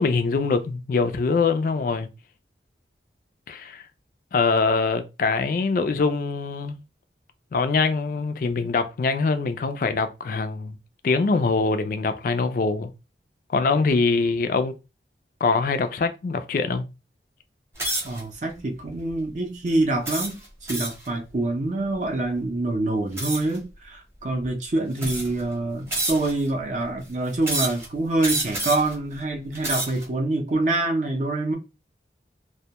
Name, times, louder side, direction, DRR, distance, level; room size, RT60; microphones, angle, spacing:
voice 1, 0.0-2.1 3.5-3.8 4.3-6.8 7.5-10.8 11.0-12.9 13.5-14.8 15.4-16.8, left 4 dB, 50° left, 0.3 m, -23 dB
sound 1, 17.8-18.2 18.9-19.1 20.0-21.1 23.2-23.6 24.4-24.5 25.0-25.4 25.9-26.5 27.4-27.9 28.2-28.9 29.4-30.0, right 2 dB, 15° right, 0.8 m, -28 dB
voice 2, 18.0-31.5, right 2 dB, 45° right, 0.5 m, -26 dB
2.1 x 2.1 x 2.8 m
head